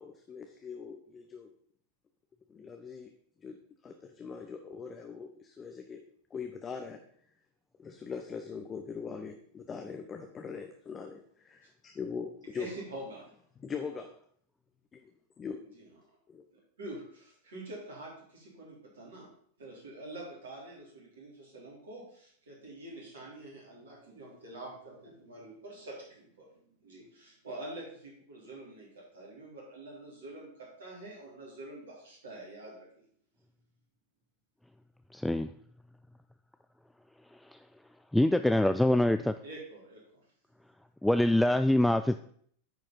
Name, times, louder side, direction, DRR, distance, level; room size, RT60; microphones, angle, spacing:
voice 1, 0.0-1.5 2.5-3.1 3.4-3.6 3.8-6.0 6.3-7.0 7.8-12.7 13.6-14.1 14.9-15.6 16.3-16.4, left 6 dB, 20° left, 5 dB, 0.8 m, -41 dB
voice 2, 12.5-13.2 15.7-15.9 16.8-19.3 19.6-26.5 26.8-33.0 39.4-40.2, right 1 dB, 65° right, -3 dB, 3.9 m, -46 dB
voice 3, 35.1-35.5 38.1-39.3 41.0-42.2, left 1 dB, 5° left, 10 dB, 0.3 m, -24 dB
9.4 x 5.1 x 5.4 m, 0.62 s
figure-of-eight pair, 90°, 0 cm